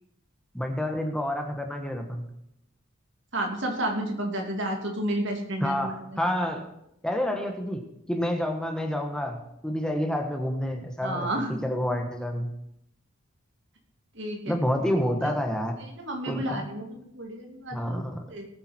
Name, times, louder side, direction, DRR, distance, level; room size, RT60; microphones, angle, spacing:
voice 1, 0.5-2.2 5.6-6.6 7.0-7.8 8.1-11.3 11.6-12.5 14.5-15.7 16.3-16.7 17.7-18.2, equal, 5° left, 3 dB, 1.4 m, -28 dB
voice 2, 3.3-5.9 11.0-11.6 14.1-14.5 15.2-15.3 16.0-18.0 18.3-18.5, right 1 dB, 60° right, 2 dB, 2.7 m, -31 dB
19.5 x 8.9 x 4.4 m, 0.79 s
head